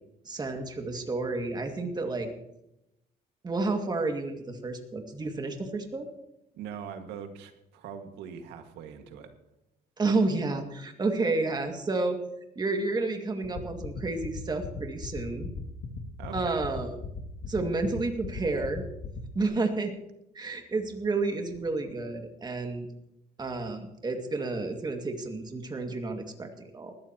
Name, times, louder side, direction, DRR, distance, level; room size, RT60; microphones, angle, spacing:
voice 1, 0.2-2.3 3.4-6.1 10.0-12.2 12.6-15.5 16.3-17.0 17.5-18.8 19.3-19.9 20.3-22.9 23.4-26.9, right 3 dB, 25° right, 4 dB, 2.2 m, -30 dB
voice 2, 6.5-9.3 16.2-16.6, right 7 dB, 85° right, 6 dB, 1.9 m, -42 dB
sound 1, 13.4-19.4, left 6 dB, 60° left, 2.1 m, -36 dB
20.0 x 14.0 x 3.0 m, 0.85 s
cardioid pair, 110°, 17 cm